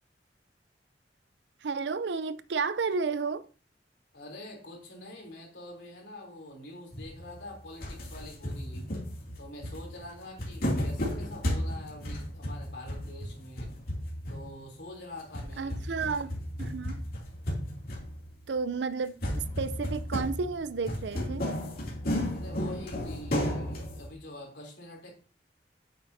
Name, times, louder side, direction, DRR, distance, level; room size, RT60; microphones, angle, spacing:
voice 1, 1.6-3.5 15.6-17.0 18.5-21.5, right 4 dB, 70° right, 0.5 m, -32 dB
voice 2, 4.1-8.9 9.4-13.7 14.3-15.7 22.3-25.1, left 1 dB, 75° left, 3.2 m, -45 dB
sound 1, 6.9-7.5 7.8-14.8 15.2-18.5 19.2-24.1, equal, 60° left, 2.7 m, -34 dB
8.7 x 7.6 x 2.7 m
head